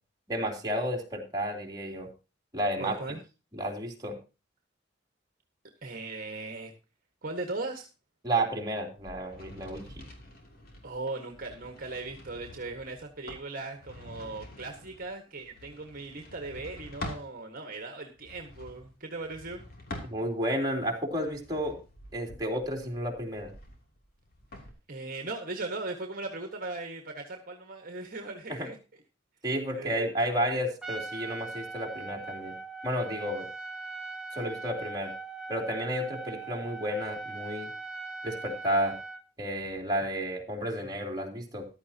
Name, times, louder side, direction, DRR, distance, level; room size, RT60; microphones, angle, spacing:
voice 1, 0.3-2.1 2.5-3.0 3.5-4.2 8.2-10.1 20.1-21.8 22.1-23.5 28.6-28.7 29.4-32.6 32.8-33.5 34.3-35.1 35.5-37.7 38.2-39.0 39.4-41.7, right 1 dB, 20° right, 0 dB, 3.3 m, -31 dB
voice 2, 2.8-3.2 5.8-6.7 7.2-7.9 10.8-19.6 24.9-28.8 29.7-30.0, right 3 dB, 50° right, 4 dB, 1.6 m, -38 dB
sound 1, 9.0-17.3 18.1-20.6 21.1-24.7, left 1 dB, 50° left, 3.0 m, -46 dB
Trumpet, 30.8-39.2, right 3 dB, 5° right, 1.3 m, -40 dB
14.5 x 12.0 x 2.9 m, 0.31 s
head